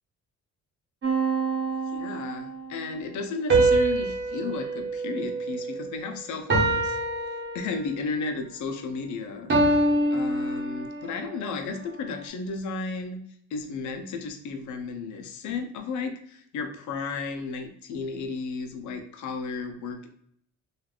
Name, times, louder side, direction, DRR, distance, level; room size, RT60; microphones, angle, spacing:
sound 1, 1.0-2.5 3.5-6.0 6.5-8.1 9.5-11.2, right 2 dB, 40° right, 0.9 m, -25 dB
voice 1, 1.9-7.0 7.5-9.8 10.1-13.2 13.5-20.1, left 4 dB, 70° left, 6 dB, 0.6 m, -34 dB
3.2 x 2.4 x 2.3 m, 0.66 s
cardioid pair, 90°, 30 cm